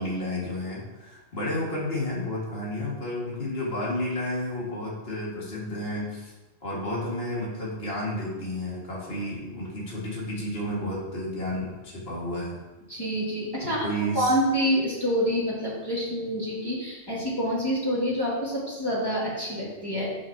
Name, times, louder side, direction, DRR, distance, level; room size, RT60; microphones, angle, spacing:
voice 1, 0.0-6.3 6.6-12.6 13.6-14.3, left 1 dB, 50° left, -6 dB, 2.4 m, -31 dB
voice 2, 12.9-13.8 14.1-20.1, equal, 15° left, -8 dB, 2.9 m, -27 dB
11.0 x 6.2 x 3.0 m, 1.1 s
omnidirectional pair, 1.3 m